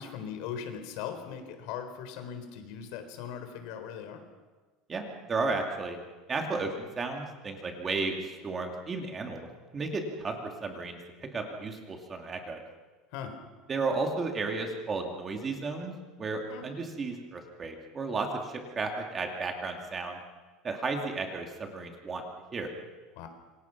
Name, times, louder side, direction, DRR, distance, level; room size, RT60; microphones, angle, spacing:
voice 1, 0.0-4.2 13.1-13.3 16.5-16.6 23.2-23.3, left 8 dB, 60° left, 7 dB, 4.1 m, -39 dB
voice 2, 4.9-6.0 6.3-9.5 9.7-11.0 11.3-12.6 13.7-15.9 16.2-20.2 20.6-22.2 22.5-22.7, right 3 dB, 20° right, 3 dB, 2.6 m, -33 dB
28.0 x 24.5 x 6.1 m, 1.3 s
cardioid pair, 170°, 0 cm